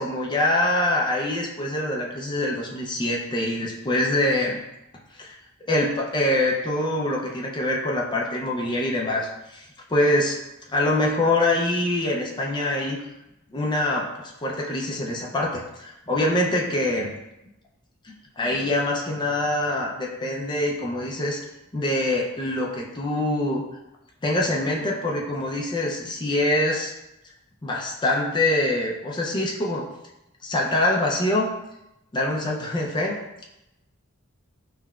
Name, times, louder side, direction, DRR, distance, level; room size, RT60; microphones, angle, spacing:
voice 1, 0.0-4.6 5.2-5.4 5.7-9.6 9.9-10.4 10.7-13.0 13.5-17.2 18.4-21.4 21.7-23.6 24.2-26.9 27.6-29.9 30.4-31.5 32.1-33.2, left 1 dB, 20° left, -1 dB, 0.4 m, -24 dB
5.5 x 2.1 x 2.3 m, 0.93 s
head